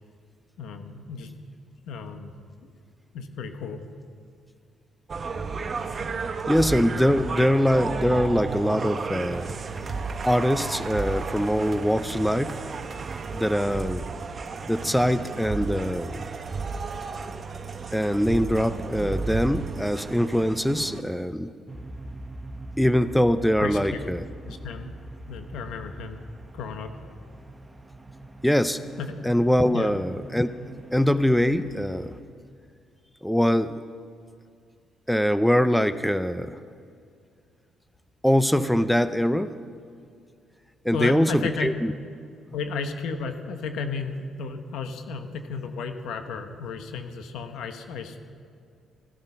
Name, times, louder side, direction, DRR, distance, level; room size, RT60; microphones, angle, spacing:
voice 1, 0.6-1.3 1.9-2.3 2.6-2.7 3.1-3.8 23.6-24.1 24.5-24.9 25.2-26.2 26.5-26.9 29.0-29.1 29.7-30.0 40.9-41.7 42.5-48.3, left 5 dB, 85° left, 6 dB, 1.2 m, -33 dB
sound 1, 5.1-21.0, right 4 dB, 40° right, 0.9 m, -33 dB
voice 2, 6.5-9.6 10.2-12.7 13.3-14.0 14.7-16.2 17.9-21.6 22.8-24.2 28.4-28.8 29.2-30.5 30.9-32.2 33.2-33.8 35.1-36.6 38.2-39.6 40.8-41.9, equal, ahead, 12 dB, 0.5 m, -23 dB
sound 2, 21.7-32.2, right 1 dB, 15° right, 1.3 m, -42 dB
14.5 x 13.5 x 5.6 m, 2.3 s
cardioid pair, 90°, 0 cm